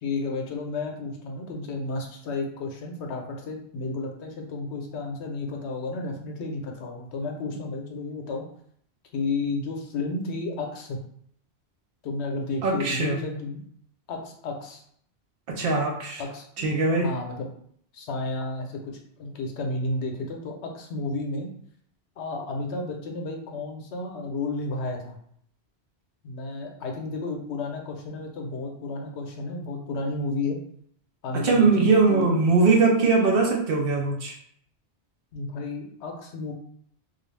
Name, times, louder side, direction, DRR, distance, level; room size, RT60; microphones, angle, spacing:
voice 1, 0.0-8.4 9.1-11.0 12.0-13.6 14.1-14.8 16.2-17.5 17.9-18.9 19.2-21.5 22.2-25.2 26.2-30.6 31.2-32.3 35.3-36.5, left 3 dB, 75° left, 2 dB, 0.9 m, -32 dB
voice 2, 12.6-13.2 15.5-16.2 16.6-17.1 31.3-34.4, right 4 dB, 65° right, 1 dB, 0.7 m, -21 dB
2.4 x 2.3 x 3.1 m, 0.65 s
omnidirectional pair, 1.1 m